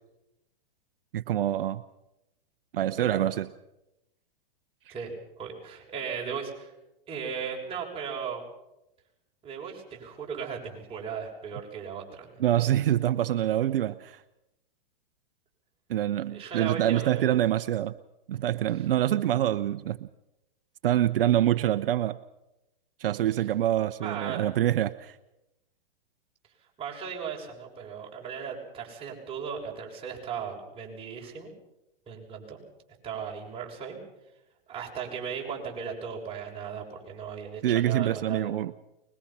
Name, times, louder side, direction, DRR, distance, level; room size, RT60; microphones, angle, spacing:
voice 1, 1.1-1.8 2.7-3.5 4.9-5.0 12.4-14.2 15.9-17.9 18.3-20.1 20.8-22.2 23.0-25.2 37.6-38.7, right 12 dB, 70° right, 11 dB, 0.8 m, -26 dB
voice 2, 2.9-3.3 4.9-6.7 7.1-8.4 9.4-12.4 16.3-17.3 24.0-24.4 26.8-31.5 32.1-32.6 33.0-34.0 34.7-38.6, right 6 dB, 20° right, -2 dB, 6.6 m, -37 dB
24.5 x 21.5 x 5.9 m, 0.92 s
hypercardioid pair, 120°, 29 cm